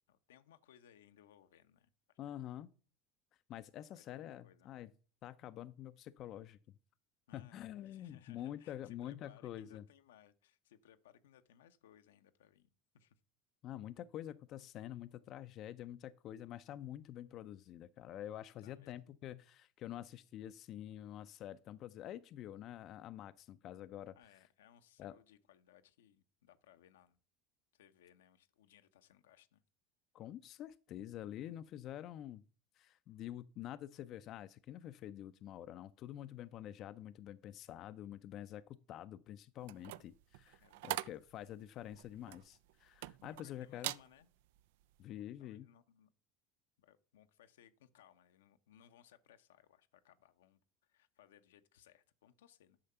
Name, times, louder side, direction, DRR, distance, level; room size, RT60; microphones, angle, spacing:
voice 1, 0.1-2.2 3.9-4.7 7.3-13.2 18.6-19.0 24.2-27.2 27.7-29.6 40.6-41.1 43.4-44.3 45.4-46.1 46.8-52.8, left 10 dB, 85° left, 0.7 m, -65 dB
voice 2, 2.2-2.7 3.5-4.9 5.2-6.6 7.3-9.8 13.6-24.2 25.0-25.1 30.1-32.4 32.8-43.9 45.0-45.7, left 12 dB, 50° left, 0.4 m, -47 dB
sound 1, 39.6-43.4 43.8-44.1 44.6-44.8, right 16 dB, 75° right, 0.3 m, -43 dB
8.7 x 5.8 x 5.5 m
hypercardioid pair, 95°, 0 cm